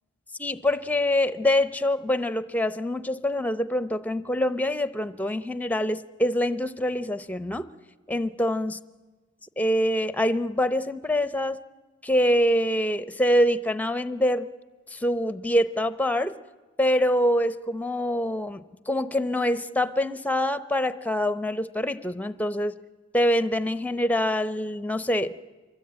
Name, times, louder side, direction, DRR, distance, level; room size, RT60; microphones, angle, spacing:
voice 1, 0.4-7.7 8.1-8.8 9.6-11.6 12.0-14.5 14.9-16.4 16.8-22.8 23.1-25.5, equal, 10° left, 13 dB, 0.7 m, -25 dB
26.5 x 23.0 x 8.8 m, 1.3 s
head